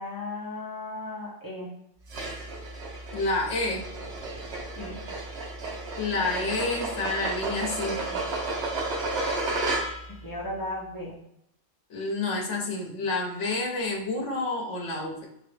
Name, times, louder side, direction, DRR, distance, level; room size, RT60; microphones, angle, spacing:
voice 1, 0.0-1.7 4.7-5.0 10.2-11.2, left 2 dB, 15° left, -6 dB, 1.2 m, -35 dB
sound 1, 2.1-10.2, right 2 dB, 65° right, 1.0 m, -32 dB
voice 2, 3.1-3.9 6.0-8.2 11.9-15.3, left 3 dB, 75° left, 0 dB, 1.1 m, -29 dB
3.5 x 2.9 x 3.2 m, 0.76 s
omnidirectional pair, 1.3 m